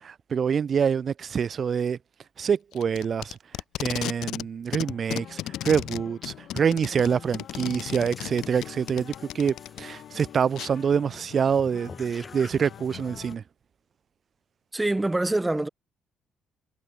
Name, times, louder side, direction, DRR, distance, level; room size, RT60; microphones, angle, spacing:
voice 1, 0.0-2.0 2.4-3.4 3.8-13.4, right 7 dB, 35° right, 0.6 m, -26 dB
Packing tape duct tape, 2.7-4.5 4.7-9.8 10.6-10.7, left 14 dB, 70° left, 0.9 m, -34 dB
sound 1, 4.8-13.4, left 10 dB, 55° left, 1.8 m, -46 dB
sound 2, 7.0-13.4, left 4 dB, 20° left, 2.4 m, -49 dB
voice 2, 14.7-15.7, right 2 dB, 10° right, 1.7 m, -25 dB
cardioid pair, 150°, 0 cm